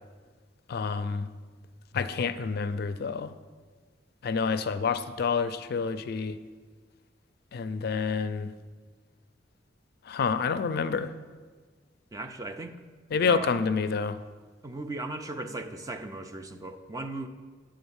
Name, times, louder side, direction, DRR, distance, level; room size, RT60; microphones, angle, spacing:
voice 1, 0.7-1.3 1.9-3.3 4.2-6.4 7.5-8.5 10.1-11.1 13.1-14.2, left 5 dB, 55° left, 12 dB, 0.4 m, -28 dB
voice 2, 12.1-12.8 13.1-13.5 14.6-17.3, right 2 dB, 20° right, 6 dB, 0.5 m, -37 dB
9.6 x 3.8 x 7.1 m, 1.5 s
head